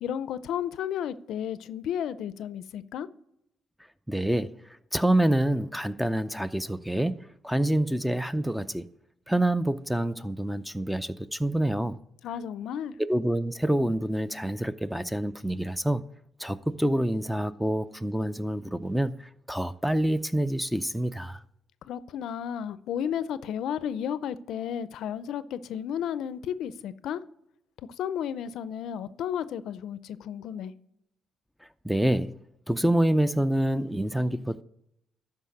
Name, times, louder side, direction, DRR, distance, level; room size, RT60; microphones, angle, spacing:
voice 1, 0.0-3.1 12.2-13.0 21.8-27.2 28.0-30.7, left 9 dB, 80° left, 0.5 m, -33 dB
voice 2, 4.1-4.6 4.9-8.9 9.3-12.0 13.1-16.0 16.4-21.4 31.8-32.4 32.7-34.6, right 1 dB, ahead, 0.5 m, -27 dB
12.5 x 4.7 x 6.4 m
cardioid pair, 90°, 0 cm